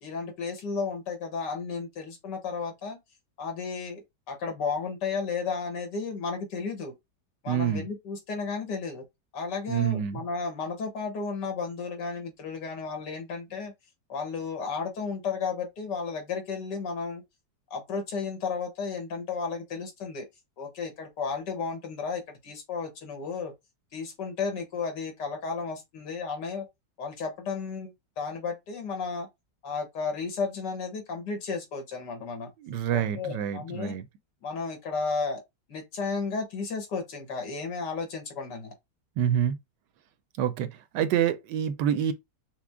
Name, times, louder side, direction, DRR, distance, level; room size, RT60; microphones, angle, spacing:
voice 1, 0.0-3.0 3.4-6.9 7.4-9.0 9.3-13.7 14.1-17.2 17.7-20.3 20.6-23.5 23.9-26.7 27.0-29.3 29.6-32.5 32.9-34.0 34.4-35.4 35.7-38.7, left 5 dB, 70° left, 1.9 m, -33 dB
voice 2, 7.5-7.8 9.7-10.2 32.6-34.0 39.2-39.6 40.4-42.1, right 9 dB, 80° right, 1.2 m, -27 dB
5.9 x 2.0 x 3.5 m
omnidirectional pair, 1.9 m